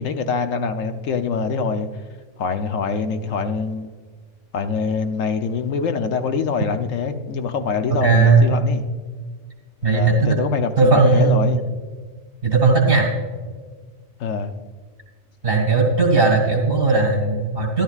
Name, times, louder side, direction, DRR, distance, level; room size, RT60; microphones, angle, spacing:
voice 1, 0.0-1.9 2.4-3.9 4.5-8.8 9.9-11.6 14.2-14.5, left 5 dB, 85° left, 7 dB, 1.1 m, -24 dB
voice 2, 7.9-8.5 9.8-10.4 10.8-11.4 12.4-13.1 15.4-17.8, right 4 dB, 50° right, -1 dB, 2.1 m, -17 dB
13.0 x 12.0 x 2.4 m, 1.5 s
omnidirectional pair, 1.3 m